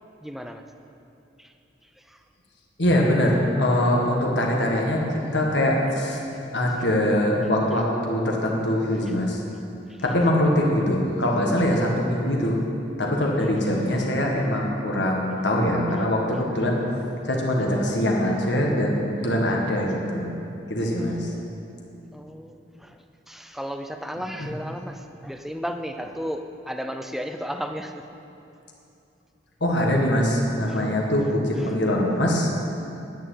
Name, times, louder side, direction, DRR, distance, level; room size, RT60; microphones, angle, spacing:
voice 1, 0.2-0.6 1.4-1.5 22.1-23.0 23.3-28.0 30.7-30.9 31.6-31.8, equal, ahead, 6 dB, 0.5 m, -34 dB
voice 2, 2.8-5.0 5.3-6.2 6.5-9.4 10.0-12.6 13.0-16.8 17.3-20.3 20.7-21.2 24.4-24.5 29.6-32.5, left 1 dB, 65° left, -1 dB, 1.7 m, -23 dB
10.5 x 6.9 x 9.1 m, 2.7 s
head